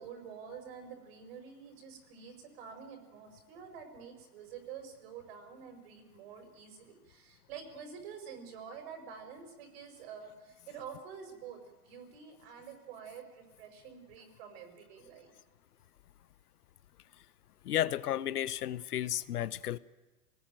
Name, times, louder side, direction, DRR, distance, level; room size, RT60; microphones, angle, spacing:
voice 1, 0.0-15.3, right 7 dB, 40° right, 7 dB, 5.2 m, -48 dB
voice 2, 17.6-19.8, left 12 dB, 70° left, 16 dB, 1.0 m, -33 dB
26.0 x 19.5 x 9.2 m, 1.2 s
supercardioid pair, 175°, 48 cm